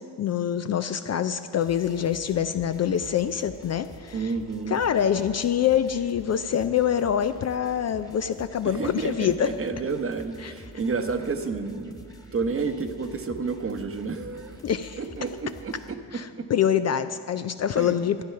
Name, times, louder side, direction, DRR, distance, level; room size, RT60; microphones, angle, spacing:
voice 1, 0.0-4.3 4.7-9.5 10.4-10.5 14.6-15.0 16.1-18.2, left 9 dB, 40° left, 10 dB, 0.4 m, -25 dB
sound 1, 1.6-15.9, equal, 10° left, 1.3 m, -47 dB
voice 2, 4.1-4.8 8.6-12.0 12.3-14.6 15.0-16.5 17.8-18.0, right 4 dB, 35° right, 8 dB, 0.9 m, -30 dB
11.5 x 9.0 x 5.7 m, 2.4 s
supercardioid pair, 70°, 40 cm